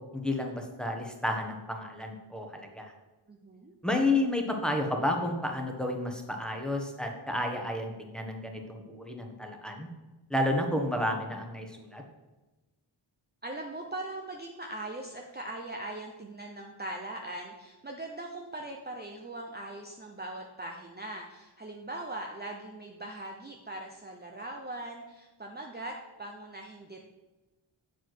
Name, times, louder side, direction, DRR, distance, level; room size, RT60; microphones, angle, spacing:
voice 1, 0.1-2.9 3.8-9.9 10.3-12.0, left 1 dB, ahead, 2 dB, 1.3 m, -31 dB
voice 2, 3.3-3.7 13.4-27.1, right 2 dB, 20° right, 1 dB, 0.8 m, -40 dB
7.4 x 5.2 x 6.0 m, 1.1 s
wide cardioid pair, 65°, 49 cm